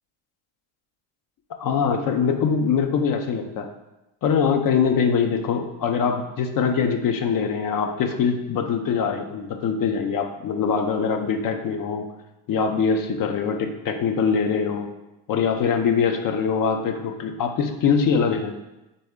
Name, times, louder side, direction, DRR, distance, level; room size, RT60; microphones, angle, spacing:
voice 1, 1.6-3.7 4.2-12.1 12.5-14.9 15.3-18.5, left 6 dB, 50° left, 6 dB, 0.6 m, -23 dB
4.1 x 3.2 x 3.6 m, 0.97 s
cardioid pair, 120°, 41 cm